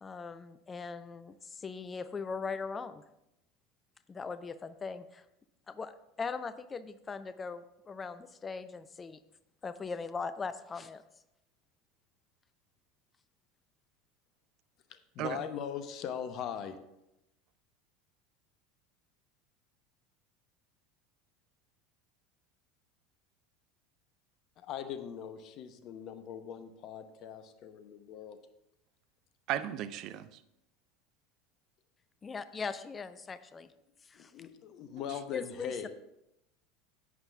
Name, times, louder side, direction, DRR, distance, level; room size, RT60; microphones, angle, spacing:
voice 1, 0.0-3.0 4.1-5.2 5.7-9.2 9.6-11.0 32.2-33.7 34.0-34.3 35.3-35.9, left 5 dB, 25° left, 0.5 m, -40 dB
voice 2, 14.9-16.8 24.6-28.4 34.1-35.9, left 8 dB, 45° left, 0.9 m, -40 dB
voice 3, 29.5-30.4 35.1-35.2, right 11 dB, 50° right, 0.5 m, -35 dB
11.0 x 9.0 x 3.5 m
figure-of-eight pair, 75°, 0 cm